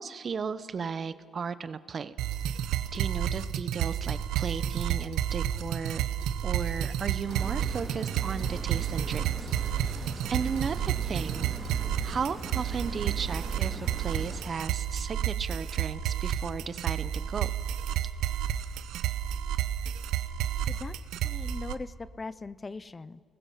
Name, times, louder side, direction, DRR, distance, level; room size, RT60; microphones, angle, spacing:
voice 1, 0.0-2.2 2.9-6.0 6.4-10.0 10.3-11.5 12.0-17.5, right 6 dB, 45° right, 14 dB, 0.9 m, -35 dB
sound 1, 2.2-21.7, right 10 dB, 90° right, 0.8 m, -31 dB
sound 2, 7.3-14.4, right 1 dB, 5° right, 4.0 m, -42 dB
voice 2, 21.2-23.2, left 3 dB, 25° left, 17 dB, 0.6 m, -40 dB
29.5 x 20.5 x 5.8 m, 2.1 s
cardioid pair, 90°, 0 cm